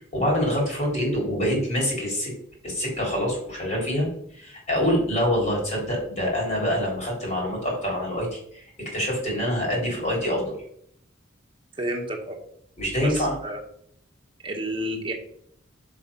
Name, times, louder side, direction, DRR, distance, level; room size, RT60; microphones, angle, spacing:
voice 1, 0.0-2.3 2.6-4.1 4.3-10.6 12.8-13.3, equal, 35° left, -2 dB, 3.7 m, -25 dB
voice 2, 11.8-12.4 13.0-13.6 14.4-15.1, right 1 dB, 25° right, 1 dB, 1.5 m, -30 dB
7.2 x 6.1 x 5.5 m, 0.68 s
head